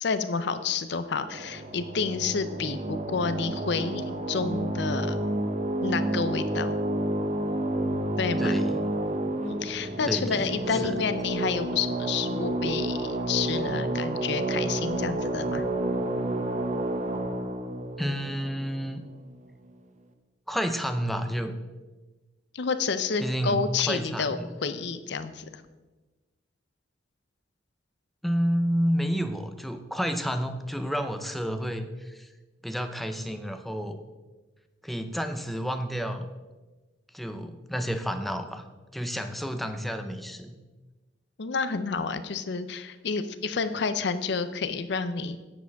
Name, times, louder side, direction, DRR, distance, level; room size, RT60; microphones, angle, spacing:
voice 1, 0.0-5.2 5.8-6.8 8.2-8.6 9.4-15.6 22.5-25.6 41.4-45.4, left 5 dB, 65° left, 11 dB, 0.6 m, -29 dB
sound 1, 1.2-19.3, right 1 dB, 40° right, 0.6 m, -30 dB
voice 2, 8.4-8.9 10.0-11.0 18.0-19.0 20.5-21.5 23.2-24.6 28.2-32.3 32.6-34.0 34.8-36.3 37.1-38.6 38.9-40.6, equal, ahead, 7 dB, 0.5 m, -30 dB
9.6 x 7.5 x 3.5 m, 1.2 s
head